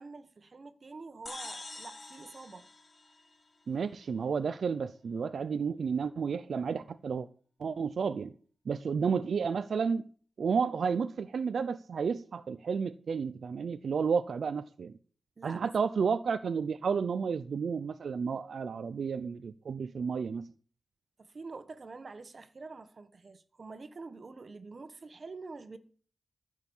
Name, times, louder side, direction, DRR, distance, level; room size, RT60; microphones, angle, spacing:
voice 1, 0.0-2.7 15.4-15.9 21.2-25.8, right 3 dB, 50° right, 1.3 m, -46 dB
sound 1, 1.3-3.8, left 2 dB, 35° left, 1.3 m, -46 dB
voice 2, 3.7-7.3 7.6-8.3 8.7-10.1 10.4-14.9 15.4-20.5, right 6 dB, 85° right, 0.6 m, -31 dB
14.5 x 6.4 x 7.2 m
wide cardioid pair, 110°, 0 cm